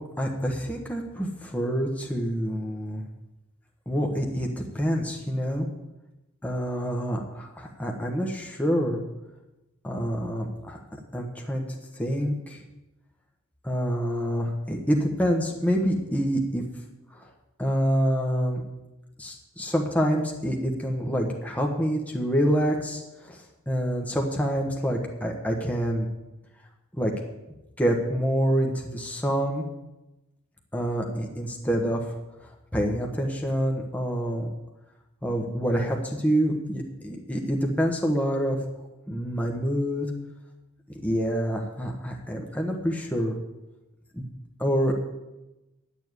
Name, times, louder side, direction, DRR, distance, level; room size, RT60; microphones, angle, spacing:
voice 1, 0.2-3.0 3.9-5.7 6.4-9.0 9.8-10.8 11.1-11.6 12.0-12.6 13.6-16.6 17.1-17.3 17.6-18.6 19.2-26.1 27.0-27.1 27.8-29.6 30.7-32.2 32.7-34.5 35.2-38.6 39.1-40.1 41.0-43.3 44.1-44.2 44.6-45.0, equal, 5° left, 0 dB, 1.2 m, -27 dB
10.5 x 7.2 x 9.6 m, 1.0 s
head